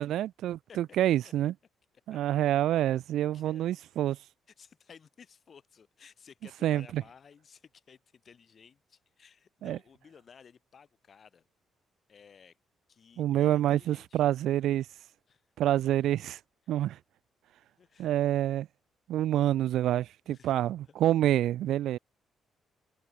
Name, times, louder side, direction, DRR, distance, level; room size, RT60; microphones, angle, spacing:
voice 1, 0.0-1.5 2.1-4.2 6.6-7.0 9.6-9.8 13.2-14.9 15.6-16.4 16.7-17.0 18.0-18.7 19.1-22.0, right 12 dB, 80° right, 0.3 m, -27 dB
voice 2, 3.2-3.7 4.5-11.4 12.1-12.6 12.9-14.3 15.3-15.4 17.8-18.1 20.2-20.6 20.9-21.0, left 6 dB, 50° left, 6.0 m, -56 dB
cardioid pair, 90°, 0 cm